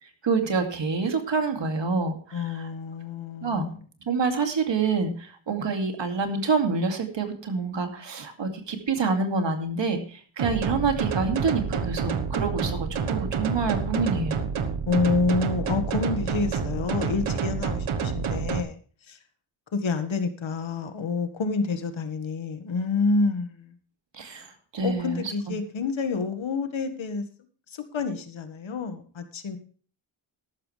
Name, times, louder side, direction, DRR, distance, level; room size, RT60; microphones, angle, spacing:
voice 1, 0.0-2.7 3.4-3.7 4.1-14.4 24.1-24.5 24.7-25.3, right 4 dB, 65° right, 5 dB, 2.5 m, -27 dB
voice 2, 2.3-3.8 14.9-18.8 19.1-19.2 19.7-23.7 24.8-27.2 27.7-29.6, left 4 dB, 70° left, 8 dB, 1.8 m, -28 dB
sound 1, 10.4-18.6, right 6 dB, 85° right, 1.3 m, -28 dB
13.5 x 12.5 x 3.3 m, 0.42 s
wide cardioid pair, 180°, 48 cm